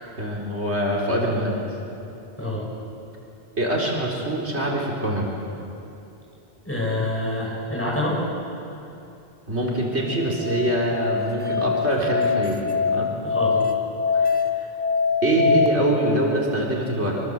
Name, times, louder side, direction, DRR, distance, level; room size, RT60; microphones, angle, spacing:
voice 1, 0.2-1.6 3.6-5.3 9.5-12.6 12.8-13.1 14.1-14.4 15.2-17.2, right 1 dB, 85° right, -2 dB, 4.4 m, -24 dB
voice 2, 6.6-8.2 13.2-13.7, left 1 dB, 10° left, -4 dB, 7.2 m, -26 dB
Musical instrument, 10.0-15.7, left 5 dB, 20° right, 1.4 m, -23 dB
25.5 x 23.5 x 7.9 m, 2.8 s
omnidirectional pair, 1.1 m